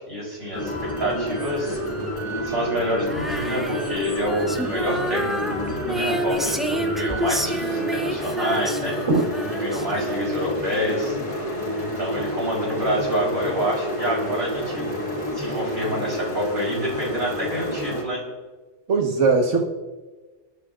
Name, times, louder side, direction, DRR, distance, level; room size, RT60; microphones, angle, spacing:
voice 1, 0.0-1.8 2.4-9.0 9.5-11.1 11.8-14.9 15.3-18.3, equal, 60° right, -3 dB, 4.2 m, -28 dB
sound 1, 0.5-18.0, equal, 25° left, 2.3 m, -29 dB
Female singing, 3.1-10.5, right 1 dB, ahead, 0.6 m, -29 dB
voice 2, 18.9-19.7, right 4 dB, 85° right, 3 dB, 1.6 m, -19 dB
29.0 x 10.0 x 2.4 m, 1.3 s
omnidirectional pair, 1.2 m